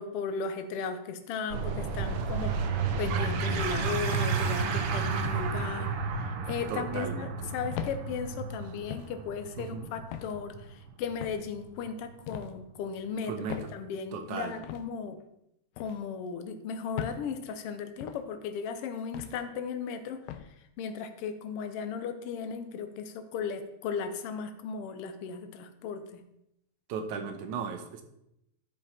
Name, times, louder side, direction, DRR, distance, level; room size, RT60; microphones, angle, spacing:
voice 1, 0.0-2.6 3.0-13.3 13.7-15.2 15.8-26.2, left 6 dB, 70° left, 8 dB, 1.5 m, -36 dB
sound 1, 1.5-12.6, right 5 dB, 65° right, 1.4 m, -32 dB
sound 2, 4.1-4.6 5.3-5.5 6.5-6.7 7.7-8.0 8.9-9.2 10.1-10.4 11.2-11.5 12.3-12.5 13.5-13.7 14.6-14.8 15.8-16.0 17.0-17.2 18.0-18.2 19.1-19.4 20.3-20.5, left 11 dB, 90° left, 2.0 m, -39 dB
voice 2, 6.7-7.3 9.6-9.9 13.2-13.6 14.1-14.5 26.9-28.0, right 6 dB, 85° right, 6 dB, 2.4 m, -36 dB
12.0 x 5.1 x 4.3 m, 0.81 s
omnidirectional pair, 3.3 m